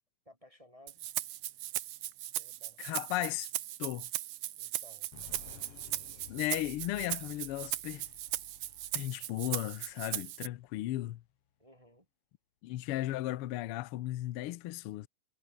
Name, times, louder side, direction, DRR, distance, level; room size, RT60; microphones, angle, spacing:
voice 1, 0.2-1.1 2.3-2.8 4.6-5.8 9.0-9.3 11.6-12.1, left 1 dB, 10° right, 4.3 m, -60 dB
Rattle (instrument), 0.9-10.5, right 15 dB, 80° right, 2.5 m, -38 dB
voice 2, 2.8-3.5 3.8-4.1 6.3-8.0 8.9-11.2 12.6-15.1, left 16 dB, 80° left, 1.2 m, -35 dB
sound 1, 5.1-10.6, left 9 dB, 55° left, 2.4 m, -55 dB
omnidirectional pair, 3.5 m